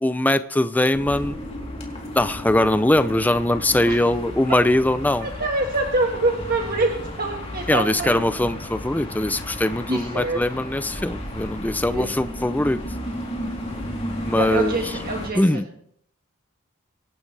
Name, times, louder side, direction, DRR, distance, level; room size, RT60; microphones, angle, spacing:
voice 1, 0.0-1.3 2.1-5.3 7.7-12.8 14.2-14.8 15.3-15.6, left 1 dB, 10° left, 12 dB, 0.4 m, -21 dB
sound 1, 0.9-15.3, left 1 dB, 30° left, 3.4 m, -34 dB
voice 2, 5.2-6.9 7.2-8.2 9.9-10.4 11.8-12.2 14.3-15.7, right 2 dB, 45° right, 1 dB, 1.6 m, -25 dB
25.5 x 11.5 x 3.4 m, 0.69 s
head